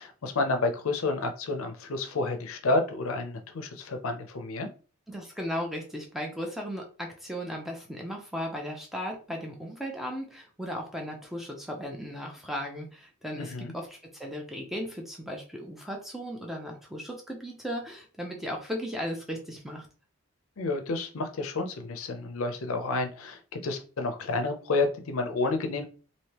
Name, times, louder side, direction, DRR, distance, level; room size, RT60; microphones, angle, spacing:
voice 1, 0.0-4.7 13.4-13.7 20.6-25.9, left 3 dB, 75° left, 6 dB, 0.5 m, -30 dB
voice 2, 5.1-19.9, equal, ahead, 1 dB, 0.6 m, -36 dB
3.3 x 2.7 x 2.9 m, 0.37 s
head